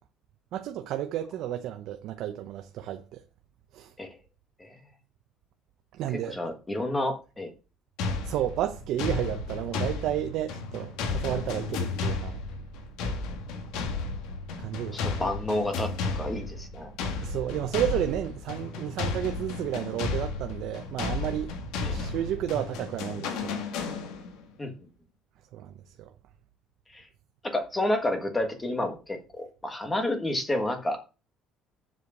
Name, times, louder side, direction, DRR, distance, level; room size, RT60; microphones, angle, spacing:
voice 1, 0.5-3.2 3.7-3.9 6.0-6.4 8.2-12.4 14.6-15.2 17.2-21.5 21.9-23.6 25.5-26.1, right 12 dB, 55° right, 0.7 m, -32 dB
voice 2, 6.3-7.5 14.9-16.9 21.8-22.0 24.6-24.7 26.9-27.0 27.4-31.0, left 1 dB, 10° left, 1.4 m, -30 dB
sound 1, 8.0-24.4, left 4 dB, 80° left, 1.7 m, -33 dB
7.7 x 4.8 x 7.0 m
cardioid pair, 175°, 0 cm